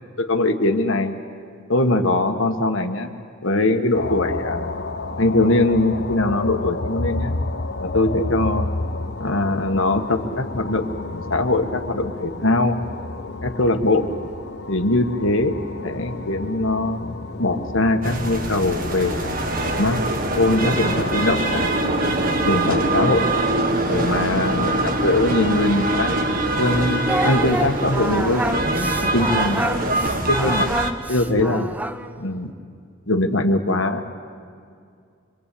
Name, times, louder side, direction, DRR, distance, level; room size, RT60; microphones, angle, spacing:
voice 1, 0.2-1.1 1.7-3.1 3.4-4.7 5.2-7.3 7.8-8.7 9.2-12.8 13.4-14.1 14.7-19.3 19.7-20.0 20.4-22.0 22.4-23.3 23.9-26.2 26.6-28.5 29.0-30.7 31.1-31.7 32.2-32.5 33.1-34.2, left 2 dB, 75° left, 5 dB, 1.8 m, -22 dB
sound 1, 3.9-23.6, left 2 dB, 50° left, 0.8 m, -31 dB
sound 2, 18.0-30.9, right 1 dB, 45° right, 1.7 m, -23 dB
Singing, 27.1-32.1, right 1 dB, 10° right, 0.8 m, -27 dB
25.5 x 25.0 x 8.6 m, 2.3 s
head